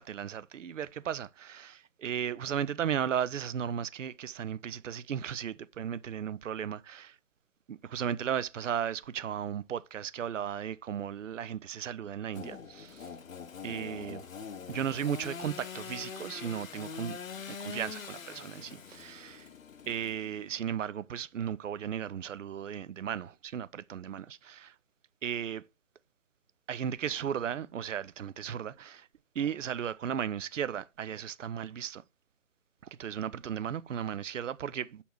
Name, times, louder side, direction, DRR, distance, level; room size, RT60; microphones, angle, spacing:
voice 1, 0.0-7.2 7.7-13.1 13.6-14.3 14.7-17.2 17.5-19.5 19.9-24.7 25.2-25.7 26.7-29.1 29.4-32.0 33.0-35.0, right 9 dB, 65° right, 0.5 m, -35 dB
Engine / Sawing, 12.3-20.6, left 6 dB, 70° left, 0.8 m, -44 dB
7.1 x 4.2 x 4.4 m
figure-of-eight pair, 145°, 42 cm